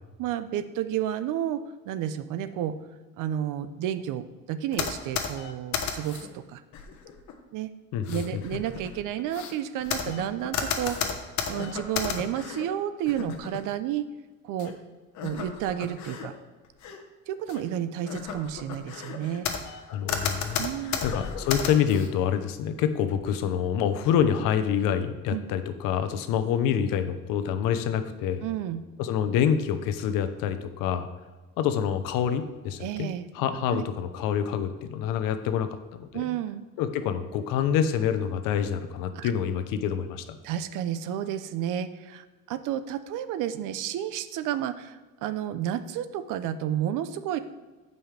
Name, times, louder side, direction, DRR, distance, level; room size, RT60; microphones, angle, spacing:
voice 1, 0.2-2.8 3.2-6.6 7.5-7.7 8.1-11.0 11.5-14.1 14.4-14.7 15.2-16.3 17.3-19.5 20.6-21.0 25.3-25.4 28.4-28.8 32.8-33.3 33.7-33.9 36.1-36.6 39.2-39.3 40.4-47.4, right 10 dB, 70° right, 12 dB, 0.7 m, -31 dB
sound 1, 4.7-6.3 6.7-7.3 7.9-12.6 13.1-13.6 14.6-14.7 15.1-16.3 16.6-17.0 17.5-17.6 18.0-19.8 20.1-22.1, left 7 dB, 60° left, 1.3 m, -33 dB
voice 2, 7.9-8.6 19.9-20.7 21.0-28.4 29.0-31.1 31.6-33.1 33.3-36.3 36.8-40.4, left 8 dB, 85° left, 9 dB, 0.9 m, -27 dB
14.5 x 5.5 x 3.4 m, 1.3 s
cardioid pair, 140°, 32 cm